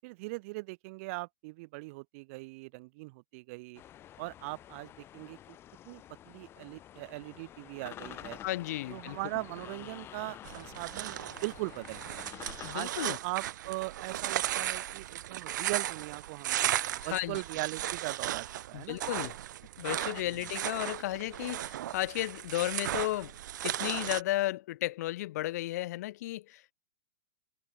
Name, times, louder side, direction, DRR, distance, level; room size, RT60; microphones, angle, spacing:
voice 1, 0.0-3.8 4.2-5.6 5.8-8.4 8.9-12.3 12.7-19.0 20.2-20.5, right 25 dB, 45° right, 7.8 m, -40 dB
sound 1, 3.7-12.8, left 12 dB, 20° left, 4.0 m, -49 dB
voice 2, 8.4-9.2 12.6-13.2 17.1-17.4 18.7-19.3 19.8-23.4 23.6-26.7, left 16 dB, 55° left, 2.9 m, -34 dB
sound 2, 10.4-24.2, right 12 dB, 65° right, 1.0 m, -36 dB
hypercardioid pair, 155°, 11 cm